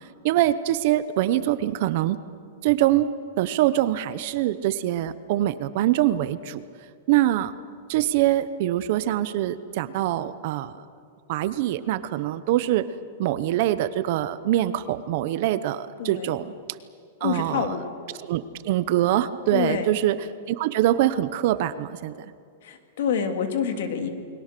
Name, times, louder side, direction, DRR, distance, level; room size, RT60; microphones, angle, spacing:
voice 1, 0.2-2.2 2.6-3.1 3.4-6.6 7.1-7.5 7.9-10.7 11.3-12.9 13.2-16.4 17.2-17.8 18.2-20.2 20.5-22.1, right 13 dB, 40° right, 14 dB, 0.7 m, -24 dB
voice 2, 16.0-16.3 17.2-17.8 19.5-19.9 22.6-24.1, left 7 dB, 60° left, 6 dB, 2.5 m, -27 dB
29.5 x 21.5 x 6.7 m, 2.3 s
supercardioid pair, 180°, 0 cm